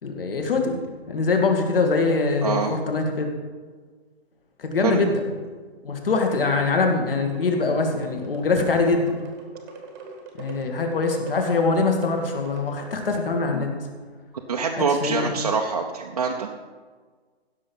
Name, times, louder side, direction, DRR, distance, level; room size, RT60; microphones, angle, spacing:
voice 1, 0.0-0.8 1.1-3.3 4.6-5.2 5.8-9.2 10.4-13.7 15.0-15.3, left 3 dB, 60° left, 3 dB, 2.2 m, -23 dB
voice 2, 2.4-2.8 4.8-5.0 14.5-16.5, right 5 dB, 35° right, 0 dB, 0.6 m, -24 dB
sound 1, 7.2-13.2, right 4 dB, 15° right, 1.1 m, -42 dB
16.0 x 6.3 x 5.4 m, 1.5 s
hypercardioid pair, 175°, 32 cm